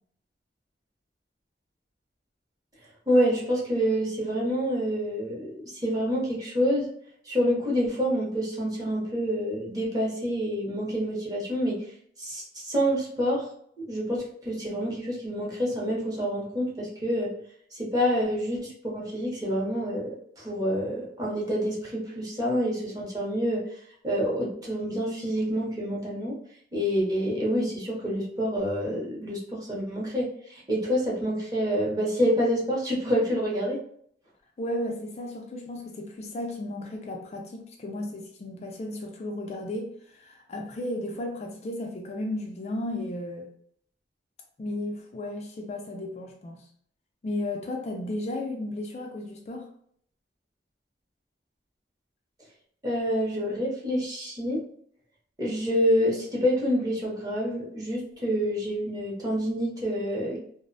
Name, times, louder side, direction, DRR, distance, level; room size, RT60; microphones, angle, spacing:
voice 1, 3.1-6.9 7.2-11.8 12.2-13.5 13.8-17.3 17.7-20.1 20.4-23.6 24.0-26.4 26.7-33.8 52.8-54.6 55.4-60.4, equal, 20° right, -4 dB, 0.7 m, -27 dB
voice 2, 34.6-43.5 44.6-46.7 47.2-49.7, left 1 dB, 35° left, 1 dB, 0.3 m, -34 dB
2.5 x 2.0 x 2.5 m, 0.65 s
head